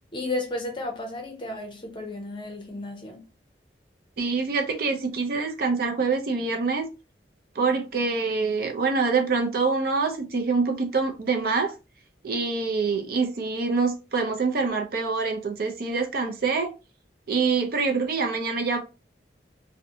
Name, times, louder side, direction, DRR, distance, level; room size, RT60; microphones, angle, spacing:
voice 1, 0.1-3.2, left 2 dB, 25° left, 0.6 m, -33 dB
voice 2, 4.2-6.9 7.6-11.7 12.2-16.7 17.3-18.8, right 4 dB, 55° right, 0.5 m, -25 dB
2.6 x 2.1 x 2.7 m
head